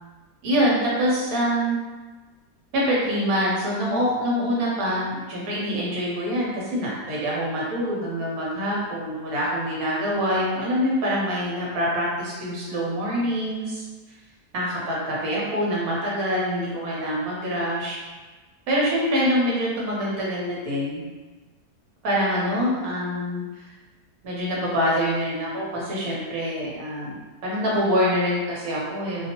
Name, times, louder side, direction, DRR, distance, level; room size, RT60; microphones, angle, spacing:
voice 1, 0.4-1.8 2.7-13.8 14.5-18.0 18.7-21.0 22.0-23.7 24.2-29.3, equal, 60° right, -5 dB, 1.2 m, -25 dB
2.9 x 2.0 x 2.9 m, 1.3 s
omnidirectional pair, 1.8 m